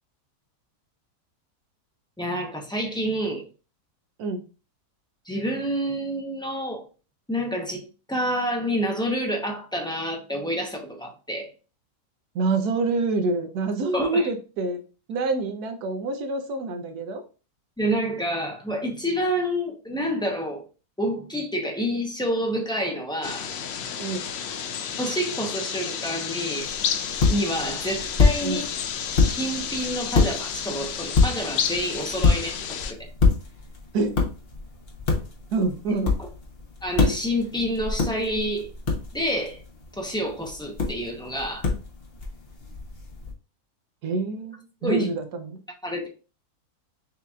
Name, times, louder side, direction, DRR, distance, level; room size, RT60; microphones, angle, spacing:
voice 1, 2.2-3.5 5.3-6.8 7.3-11.5 13.9-14.3 17.8-20.6 21.0-23.5 25.0-26.7 27.3-28.7 29.1-32.6 32.9-33.0 36.2-36.3 36.8-38.7 39.1-39.6 39.9-41.7 44.8-45.1 45.8-46.1, equal, 5° left, 0.4 m, -28 dB
voice 2, 12.3-14.8 15.1-17.2 24.0-24.3 28.4-28.7 33.9-34.2 35.5-36.1 44.0-45.6, right 3 dB, 85° right, 1.3 m, -26 dB
sound 1, 23.2-32.9, left 7 dB, 70° left, 0.6 m, -31 dB
sound 2, 26.6-43.3, left 4 dB, 45° left, 1.0 m, -27 dB
6.5 x 2.9 x 2.3 m
omnidirectional pair, 1.6 m